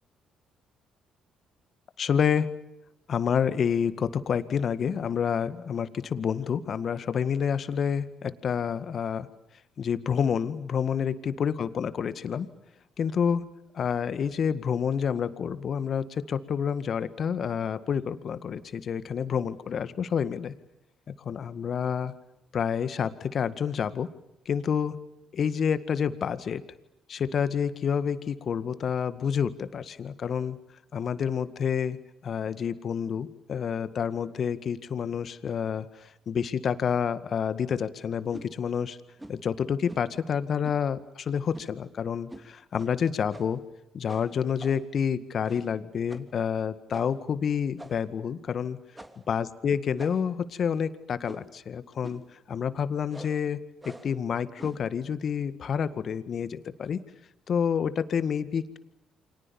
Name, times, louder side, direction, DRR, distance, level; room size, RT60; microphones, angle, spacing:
voice 1, 2.0-2.5 3.1-9.3 9.8-12.5 13.0-13.4 13.7-20.5 21.1-22.1 22.5-24.1 24.5-24.9 25.3-26.6 27.1-30.6 30.9-32.0 32.2-39.0 39.3-43.6 43.9-48.8 49.3-53.6 54.0-57.0 57.5-58.8, left 7 dB, 55° left, 13 dB, 1.9 m, -28 dB
sound 1, 38.3-38.5 39.2-39.4 39.9-40.2 40.6-40.8 41.5-41.8 42.3-42.5 42.8-42.9 43.3-43.7 44.1-44.9 45.4-45.8 46.1-46.3 46.9-47.2 47.8-48.2 48.9-49.3 50.0-50.4 51.2-51.6 52.0-52.3 53.1-53.4 53.8-54.2 54.6-54.9, right 1 dB, 15° right, 3.3 m, -46 dB
30.0 x 26.0 x 7.2 m, 0.86 s
hypercardioid pair, 50°, 0 cm